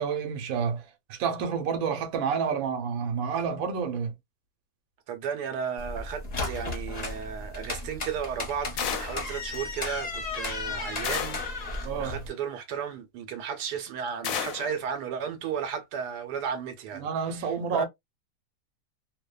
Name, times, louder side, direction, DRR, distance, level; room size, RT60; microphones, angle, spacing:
voice 1, 0.0-4.1 11.8-12.2 16.9-17.8, right 6 dB, 65° right, 1.1 m, -29 dB
voice 2, 5.1-17.1 17.4-17.8, right 7 dB, 85° right, 1.2 m, -34 dB
sound 1, 5.8-12.3, left 3 dB, 35° left, 0.6 m, -34 dB
sound 2, 8.8-9.3 11.0-11.6 14.2-14.8, left 8 dB, 70° left, 0.9 m, -32 dB
2.7 x 2.1 x 2.2 m
omnidirectional pair, 1.7 m